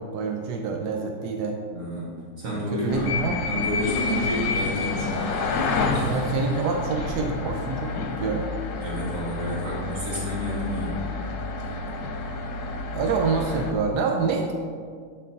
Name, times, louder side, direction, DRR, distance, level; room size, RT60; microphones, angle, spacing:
voice 1, 0.0-1.6 2.4-3.4 6.1-8.5 12.9-14.5, right 4 dB, 85° right, 3 dB, 1.2 m, -27 dB
voice 2, 1.7-2.1 2.4-3.2 3.5-5.3 5.9-6.3 8.8-10.9, equal, 55° right, -6 dB, 1.9 m, -30 dB
sound 1, 2.9-13.7, left 3 dB, 75° left, 1.4 m, -29 dB
11.5 x 4.3 x 4.0 m, 2.1 s
omnidirectional pair, 1.7 m